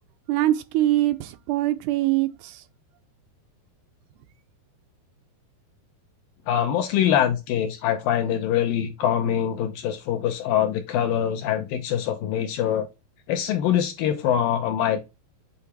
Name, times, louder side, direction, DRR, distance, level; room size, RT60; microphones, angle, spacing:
voice 1, 0.3-2.6, right 15 dB, 80° right, 2.5 m, -23 dB
voice 2, 6.5-12.9 13.3-15.0, left 10 dB, 80° left, 2.1 m, -24 dB
8.4 x 2.8 x 4.6 m
omnidirectional pair, 4.7 m